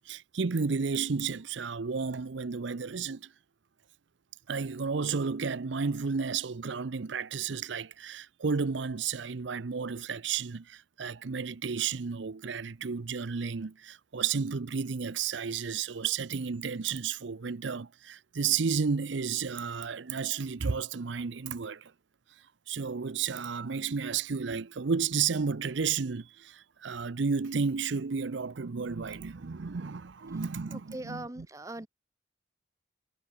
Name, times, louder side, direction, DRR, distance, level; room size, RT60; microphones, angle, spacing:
voice 1, 0.1-3.3 4.5-21.9 22.7-31.5, right 5 dB, 75° right, 0.6 m, -32 dB
voice 2, 30.9-31.9, right 2 dB, 15° right, 0.8 m, -40 dB
head